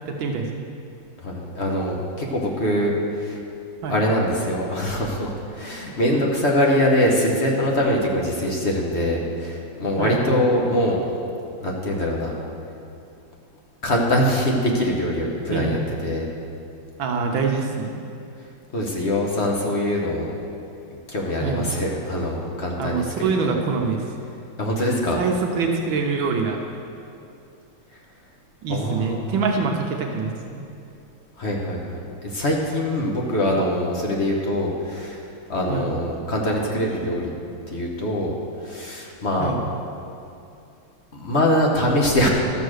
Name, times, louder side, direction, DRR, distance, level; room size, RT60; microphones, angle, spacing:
voice 1, 0.1-0.7 3.8-4.0 10.0-10.4 15.5-15.8 17.0-18.1 21.4-21.7 22.8-24.0 24.8-26.6 28.6-30.6 35.7-35.9 39.4-39.6, right 4 dB, 75° right, 2 dB, 1.6 m, -25 dB
voice 2, 1.2-3.4 3.9-11.0 11.6-12.3 13.8-16.3 18.7-20.3 21.1-23.3 24.6-25.2 28.7-29.3 31.4-35.2 35.5-37.3 37.7-38.3 38.6-39.5 41.1-42.3, left 1 dB, 40° left, -1 dB, 1.3 m, -23 dB
12.5 x 6.9 x 6.4 m, 2.6 s
omnidirectional pair, 2.2 m